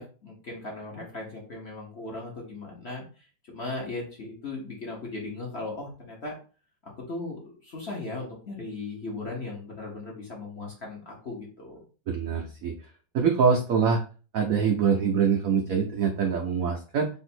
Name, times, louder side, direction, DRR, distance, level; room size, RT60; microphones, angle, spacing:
voice 1, 0.0-6.4 7.0-11.8, left 2 dB, 40° left, -2 dB, 1.1 m, -37 dB
voice 2, 12.1-12.7 13.1-14.0 14.3-17.1, right 6 dB, 75° right, 1 dB, 0.8 m, -24 dB
3.4 x 2.7 x 4.3 m, 0.36 s
omnidirectional pair, 2.2 m